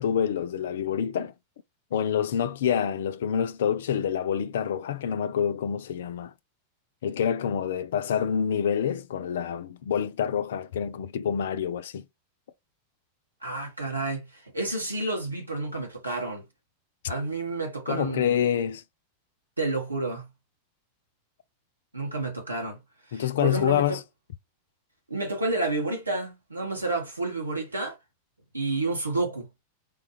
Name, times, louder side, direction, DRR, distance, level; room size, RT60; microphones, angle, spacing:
voice 1, 0.0-1.3 1.9-6.3 7.0-12.0 17.9-18.8 23.1-24.0, left 8 dB, 60° left, 0.3 m, -27 dB
voice 2, 13.4-16.4 17.1-18.5 19.6-20.3 21.9-22.8 23.1-24.0 25.1-27.9 28.5-29.5, right 2 dB, 80° right, 1.1 m, -30 dB
3.4 x 2.3 x 3.0 m
figure-of-eight pair, 90°, 0 cm